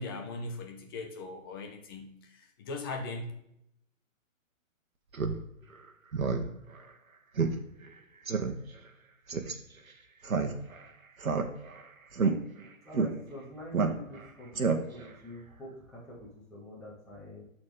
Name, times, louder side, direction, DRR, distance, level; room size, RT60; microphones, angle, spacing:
voice 1, 0.0-3.3, left 2 dB, 20° left, 3 dB, 0.8 m, -39 dB
Speech synthesizer, 5.1-5.4 5.7-5.8 6.1-6.4 6.8-6.9 7.4-7.5 7.8-7.9 8.3-8.5 9.3-9.5 10.2-10.8 11.2-11.8 12.1-12.3 12.9-13.1 13.7-14.2 14.5-15.1, right 5 dB, 85° right, 1.3 m, -28 dB
voice 2, 12.8-14.6 14.9-17.4, left 1 dB, ahead, -9 dB, 1.4 m, -46 dB
11.5 x 4.3 x 3.5 m, 0.76 s
hypercardioid pair, 150°, 40 cm